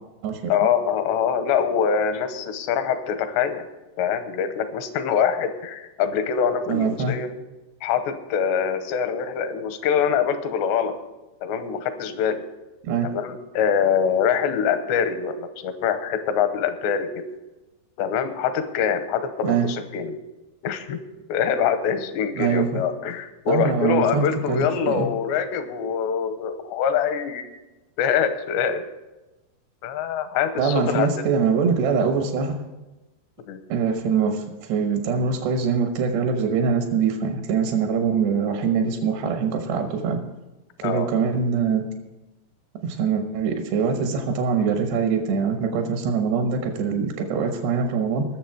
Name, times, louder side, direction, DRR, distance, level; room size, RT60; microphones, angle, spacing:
voice 1, 0.5-3.7 4.0-7.3 7.8-11.0 11.4-12.4 13.0-17.3 18.0-20.2 20.6-21.0 21.3-27.5 28.0-28.9 29.8-31.3 33.5-33.6 40.8-41.1, left 7 dB, 85° left, 9 dB, 3.0 m, -24 dB
voice 2, 6.7-7.2 12.8-13.1 19.4-19.7 22.4-22.8 23.5-25.1 30.6-32.6 33.7-40.2 40.8-41.8 42.8-48.3, right 6 dB, 75° right, 4 dB, 3.2 m, -23 dB
20.5 x 7.1 x 4.8 m, 1.1 s
omnidirectional pair, 5.0 m